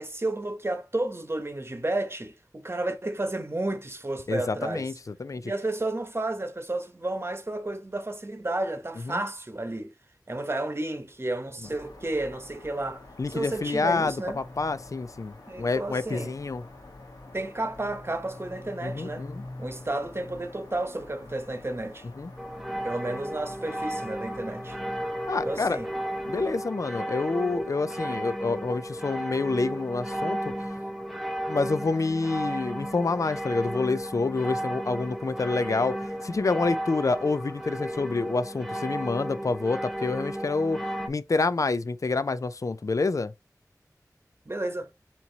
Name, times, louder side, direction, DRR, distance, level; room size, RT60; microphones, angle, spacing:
voice 1, 0.0-4.9 5.4-9.9 10.3-14.4 15.5-16.3 17.3-19.3 19.6-22.1 22.8-24.8 25.4-25.9 34.6-34.7 44.5-44.9, right 2 dB, 40° right, 1.0 m, -32 dB
voice 2, 4.3-4.9 5.2-5.5 9.1-9.2 13.2-16.6 18.8-19.4 22.2-22.3 25.3-25.8 26.3-30.5 31.5-36.0 36.2-40.8 41.1-43.3, left 3 dB, 55° left, 0.4 m, -28 dB
sound 1, 11.6-26.4, left 2 dB, 85° left, 1.2 m, -46 dB
sound 2, 22.4-41.1, equal, 5° right, 0.7 m, -34 dB
4.4 x 2.9 x 3.9 m
wide cardioid pair, 60°, 7 cm